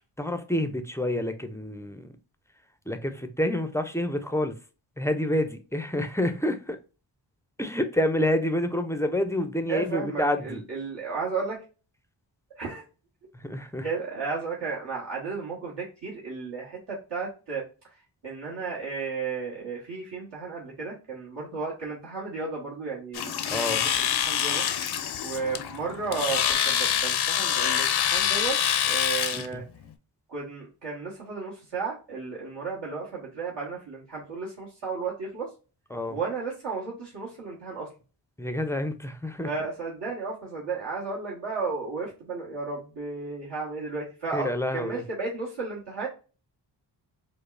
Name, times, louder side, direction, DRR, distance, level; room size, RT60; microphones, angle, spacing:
voice 1, 0.2-2.1 2.9-4.5 5.0-6.8 7.6-10.6 13.3-13.9 23.5-23.9 29.3-29.6 35.9-36.2 38.4-39.5 44.3-45.0, left 1 dB, 5° left, 0.4 m, -28 dB
voice 2, 9.7-11.6 12.6-12.8 13.8-17.6 18.2-24.9 25.2-28.6 28.8-29.6 30.3-35.5 36.1-37.9 39.4-46.1, right 4 dB, 60° right, 1.4 m, -33 dB
Domestic sounds home sounds, 23.1-29.5, left 9 dB, 55° left, 0.5 m, -26 dB
5.1 x 2.1 x 2.5 m
cardioid pair, 65°, 47 cm